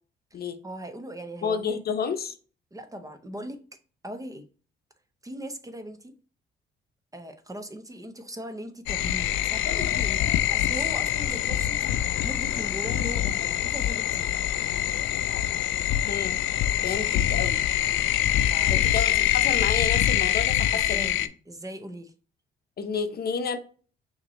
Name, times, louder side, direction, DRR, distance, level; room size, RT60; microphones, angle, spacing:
voice 1, 0.6-1.6 2.7-3.6 4.0-4.4 5.2-6.1 7.1-11.8 12.2-14.3 17.1-17.2 18.5-18.9 20.7-21.2 21.4-22.1, right 1 dB, 15° right, 0.7 m, -39 dB
voice 2, 1.4-2.4 16.1-16.4 16.8-17.6 18.7-21.1 22.8-23.6, left 5 dB, 50° left, 0.8 m, -30 dB
sound 1, 8.9-21.3, left 12 dB, 85° left, 0.4 m, -25 dB
5.8 x 2.8 x 3.0 m
cardioid pair, 90°, 20 cm